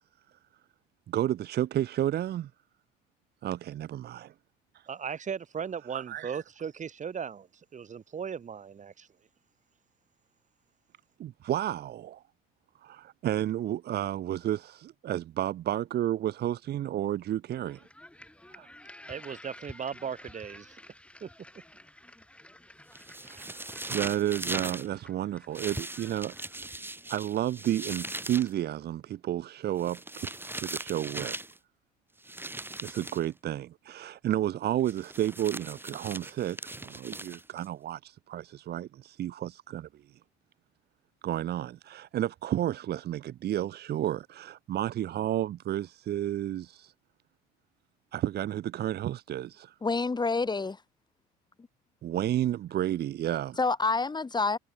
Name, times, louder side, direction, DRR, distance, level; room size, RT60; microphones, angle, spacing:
voice 1, 1.1-2.5 3.4-4.3 4.7-4.8 5.9-6.4 11.2-12.2 12.8-17.8 18.5-18.7 23.2-26.3 27.1-30.3 30.6-31.4 32.8-40.2 41.2-46.9 48.1-49.8 52.0-53.6, right 12 dB, 55° right, 1.8 m, -31 dB
voice 2, 4.9-9.1 19.1-20.8 21.2-21.3, right 7 dB, 35° right, 4.5 m, -37 dB
sound 1, 17.6-27.0, left 1 dB, 5° left, 2.7 m, -50 dB
sound 2, 22.9-24.9 25.5-28.5 29.8-31.6 32.2-33.3 34.8-37.7, right 2 dB, 10° right, 6.2 m, -39 dB
voice 3, 49.8-50.8 53.6-54.6, left 3 dB, 20° left, 3.2 m, -27 dB
hypercardioid pair, 75°, 20 cm